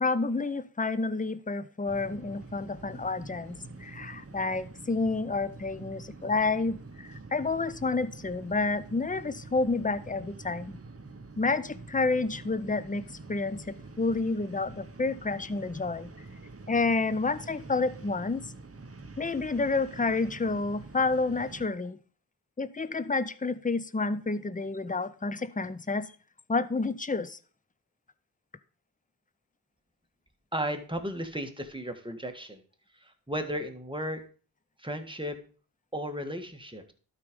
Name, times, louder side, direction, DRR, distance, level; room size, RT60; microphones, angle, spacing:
voice 1, 0.0-10.8 11.4-13.0 13.3-16.1 16.7-18.4 19.2-22.0 22.6-26.1 26.5-27.4, left 3 dB, 20° left, 0.6 m, -29 dB
sound 1, 1.9-21.7, right 3 dB, 35° right, 0.9 m, -46 dB
voice 2, 30.5-32.6 32.9-34.2 34.8-35.4 35.9-36.9, equal, 10° right, 1.6 m, -35 dB
12.0 x 5.0 x 5.2 m
wide cardioid pair, 45°, 40 cm